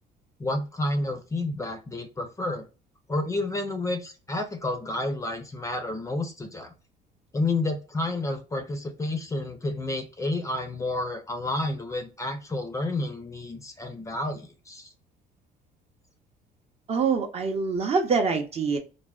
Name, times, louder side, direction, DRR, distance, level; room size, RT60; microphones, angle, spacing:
voice 1, 0.4-2.7 3.1-6.7 7.3-14.9, left 2 dB, 20° left, 0.5 m, -30 dB
voice 2, 16.9-18.8, right 5 dB, 35° right, 0.6 m, -25 dB
3.3 x 2.0 x 2.3 m
cardioid pair, 110°, 17 cm